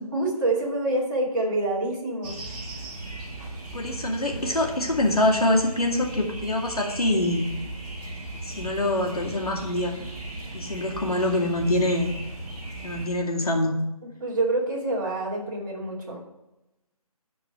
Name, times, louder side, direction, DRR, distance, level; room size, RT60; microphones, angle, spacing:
voice 1, 0.1-2.3 14.0-16.2, right 2 dB, 30° right, -4 dB, 2.6 m, -27 dB
sound 1, 2.2-13.1, right 2 dB, 15° right, 1.7 m, -37 dB
voice 2, 3.7-7.4 8.4-10.0 10.5-12.1 12.8-13.7, left 1 dB, 75° left, -1 dB, 2.4 m, -24 dB
11.5 x 4.7 x 6.1 m, 0.95 s
figure-of-eight pair, 155°, 19 cm